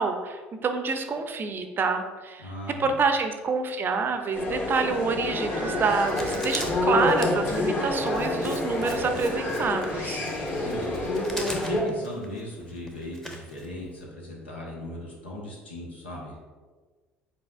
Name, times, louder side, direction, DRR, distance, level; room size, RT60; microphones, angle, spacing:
voice 1, 0.0-2.5 2.8-10.2, right 4 dB, 35° right, 7 dB, 0.5 m, -27 dB
voice 2, 2.4-2.9 10.5-11.1 11.4-16.5, left 1 dB, 85° left, -3 dB, 1.0 m, -38 dB
sound 1, 4.3-11.8, left 2 dB, 40° left, 1.5 m, -28 dB
Writing, 6.1-14.0, equal, 10° left, 0.9 m, -40 dB
5.5 x 4.0 x 2.4 m, 1.4 s
figure-of-eight pair, 60°, 6 cm